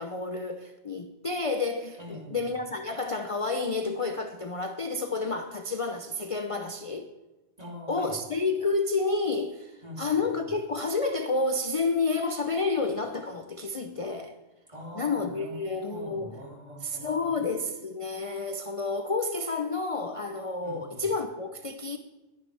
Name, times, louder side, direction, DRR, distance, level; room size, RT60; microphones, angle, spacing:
voice 1, 0.0-7.1 7.9-14.3 15.0-16.3 16.8-22.0, left 3 dB, 35° left, 0.7 m, -30 dB
voice 2, 2.0-2.5 7.6-8.2 9.8-10.5 14.7-15.6 15.8-17.3 20.6-21.1, equal, 35° right, 3.6 m, -44 dB
20.0 x 10.5 x 3.4 m
omnidirectional pair, 1.2 m